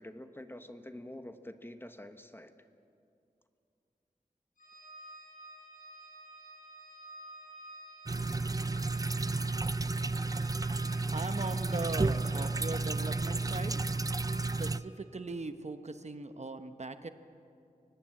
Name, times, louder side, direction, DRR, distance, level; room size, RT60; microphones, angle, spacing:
voice 1, 0.0-2.5, left 1 dB, 15° left, 9 dB, 1.1 m, -47 dB
Organ, 4.6-15.0, right 1 dB, 75° left, 6.0 m, -50 dB
sound 1, 8.1-14.8, right 3 dB, 25° right, 0.4 m, -32 dB
voice 2, 11.1-13.8 14.6-17.1, right 3 dB, 50° right, 9 dB, 1.0 m, -39 dB
24.5 x 19.0 x 7.7 m, 2.5 s
wide cardioid pair, 80°, 14 cm